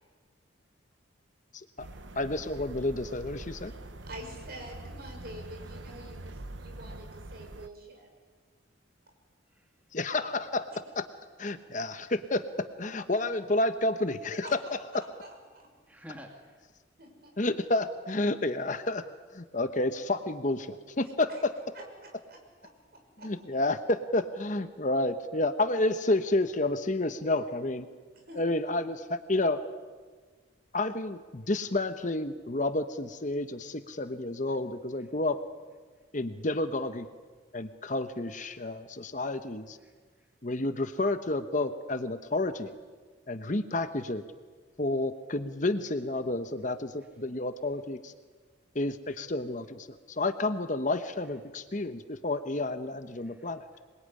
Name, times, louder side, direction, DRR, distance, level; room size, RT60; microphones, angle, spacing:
voice 1, 1.5-1.9 2.1-3.7 9.9-11.1 11.4-15.0 17.4-21.5 23.2-27.9 28.3-29.6 30.7-35.4 36.1-37.1 37.5-39.8 40.4-42.8 43.3-44.2 44.8-48.1 48.7-53.6, left 2 dB, 40° left, 10 dB, 1.0 m, -30 dB
sound 1, 1.8-7.7, right 2 dB, 70° right, 1.1 m, -44 dB
voice 2, 4.1-8.1 14.2-14.5 15.2-15.3 15.5-15.7 17.0-17.3 21.7-21.8 22.3-23.3 28.3-28.4, right 1 dB, 50° right, 2 dB, 6.4 m, -46 dB
voice 3, 15.9-16.6 38.5-38.7 39.8-40.3 53.1-53.6, equal, 5° right, 1 dB, 2.4 m, -51 dB
26.5 x 21.5 x 9.8 m, 1.5 s
head